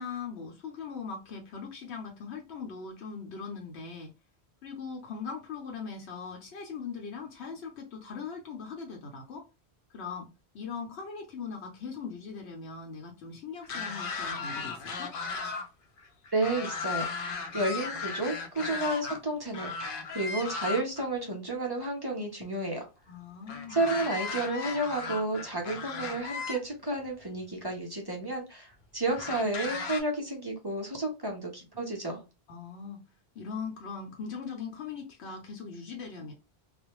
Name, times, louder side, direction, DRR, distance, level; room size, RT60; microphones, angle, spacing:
voice 1, 0.0-4.1 4.6-9.4 9.9-10.3 10.5-15.1 23.1-23.9 32.5-33.0 33.3-36.3, left 5 dB, 85° left, 1.0 m, -40 dB
sound 1, 13.6-15.7 16.0-19.2 19.5-21.1 23.5-26.6 27.5-27.6 29.1-30.0, left 4 dB, 60° left, 0.7 m, -36 dB
voice 2, 16.3-17.3 17.5-19.9 20.1-22.9 23.7-32.2, right 2 dB, 25° right, 0.6 m, -31 dB
2.4 x 2.1 x 2.9 m
omnidirectional pair, 1.1 m